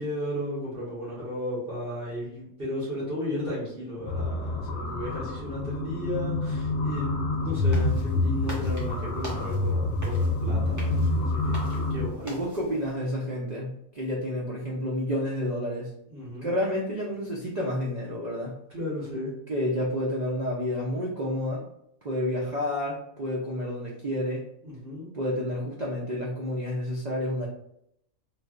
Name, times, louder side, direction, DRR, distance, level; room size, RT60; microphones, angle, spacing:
voice 1, 0.0-7.1 7.4-12.4 16.1-16.6 18.7-19.3 24.6-25.1, left 1 dB, 40° right, -9 dB, 1.3 m, -34 dB
sound 1, 4.1-12.1, left 2 dB, 70° left, 0.9 m, -27 dB
sound 2, 7.5-12.9, equal, 20° right, 0.4 m, -44 dB
voice 2, 12.2-15.9 16.4-18.5 19.5-21.6 22.0-24.4 25.1-27.5, left 1 dB, 90° right, -4 dB, 0.3 m, -30 dB
3.2 x 2.5 x 2.4 m, 0.75 s
omnidirectional pair, 1.5 m